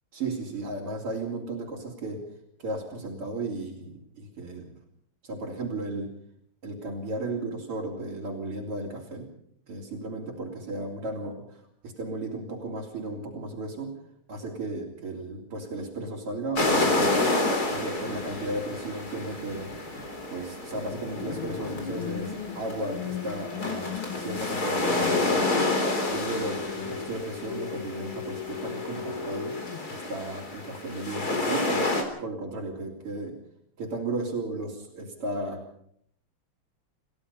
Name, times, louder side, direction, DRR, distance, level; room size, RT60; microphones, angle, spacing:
voice 1, 0.1-2.3 2.6-4.8 5.2-6.1 6.6-9.3 9.7-13.9 14.3-17.3 17.7-19.7 20.3-25.7 26.1-29.6 29.9-33.4 33.8-35.6, right 2 dB, 80° right, -3 dB, 4.4 m, -35 dB
sound 1, 16.6-32.0, left 2 dB, 40° left, 4.1 m, -29 dB
sound 2, 21.1-30.1, left 9 dB, 70° left, 1.9 m, -37 dB
29.5 x 16.5 x 5.6 m, 0.68 s
omnidirectional pair, 2.4 m